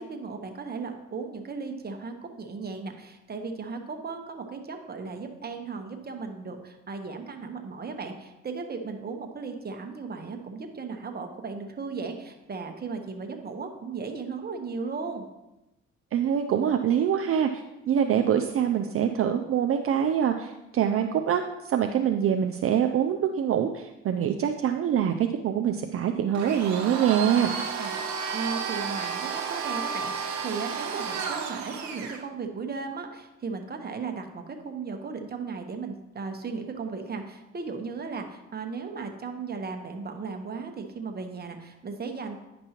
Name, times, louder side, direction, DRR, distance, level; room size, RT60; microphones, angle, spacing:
voice 1, 0.0-15.3 27.8-27.9 28.3-42.4, right 4 dB, 30° right, 4 dB, 1.0 m, -36 dB
voice 2, 16.1-27.5, right 9 dB, 50° right, 5 dB, 0.4 m, -25 dB
Domestic sounds home sounds, 26.3-32.2, right 6 dB, 65° right, 0.9 m, -32 dB
10.0 x 5.3 x 2.9 m, 0.98 s
cardioid pair, 90°, 30 cm